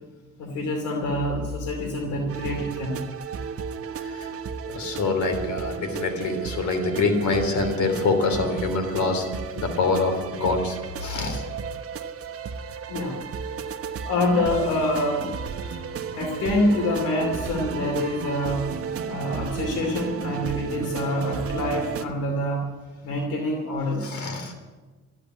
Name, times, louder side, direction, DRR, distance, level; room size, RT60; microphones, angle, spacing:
voice 1, 0.4-3.0 12.9-13.2 14.0-15.3 16.1-18.7 19.1-22.7 23.0-24.1, left 1 dB, 90° left, 2 dB, 2.6 m, -26 dB
sound 1, 2.3-22.1, right 6 dB, 50° right, 1.1 m, -34 dB
voice 2, 4.0-4.3 4.6-9.3 9.5-11.4 15.7-15.8 24.0-24.5, left 3 dB, 70° left, 5 dB, 3.4 m, -25 dB
13.5 x 9.9 x 9.6 m, 1.3 s
cardioid pair, 90°, 30 cm